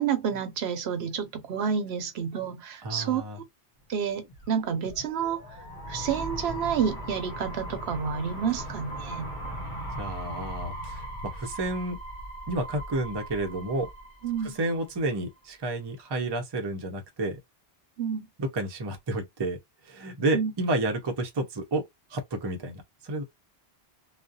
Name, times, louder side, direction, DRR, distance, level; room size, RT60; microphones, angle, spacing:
voice 1, 0.0-3.2 3.9-5.4 5.9-9.3 14.2-14.6 18.0-18.3 20.3-20.5, right 7 dB, 80° right, 0.9 m, -29 dB
voice 2, 2.8-3.4 10.0-12.0 12.5-13.9 14.4-17.4 18.4-19.6 19.8-21.8 22.1-23.2, right 2 dB, 30° right, 0.5 m, -30 dB
sound 1, 4.1-15.0, equal, 50° left, 1.0 m, -39 dB
2.4 x 2.0 x 2.6 m
omnidirectional pair, 1.1 m